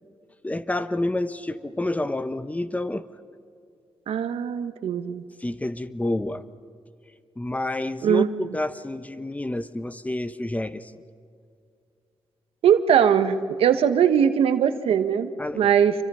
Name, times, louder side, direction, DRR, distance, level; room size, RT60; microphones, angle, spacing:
voice 1, 0.4-3.1 5.4-6.4 7.4-11.0 15.4-15.7, left 1 dB, 15° left, 13 dB, 1.0 m, -29 dB
voice 2, 4.1-5.2 8.0-8.3 12.6-15.3 15.6-15.9, right 8 dB, 85° right, 10 dB, 1.2 m, -20 dB
28.0 x 24.0 x 5.6 m, 2.4 s
cardioid pair, 75°, 10 cm